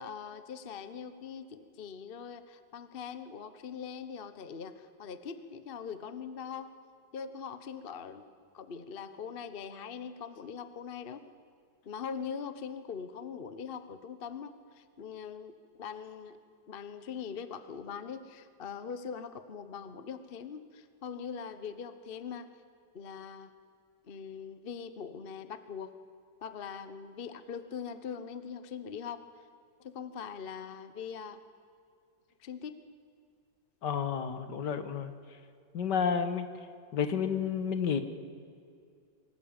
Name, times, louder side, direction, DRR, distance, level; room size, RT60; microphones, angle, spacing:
voice 1, 0.0-6.7 7.1-8.2 8.5-11.2 11.9-16.4 16.7-22.5 22.9-23.5 24.0-26.0 26.4-29.3 29.8-31.4 32.4-32.8, left 6 dB, 40° left, 11 dB, 0.9 m, -42 dB
voice 2, 33.8-35.1 35.7-36.5 36.9-38.0, left 7 dB, 65° left, 10 dB, 1.9 m, -30 dB
24.5 x 14.5 x 8.9 m, 2.3 s
omnidirectional pair, 2.0 m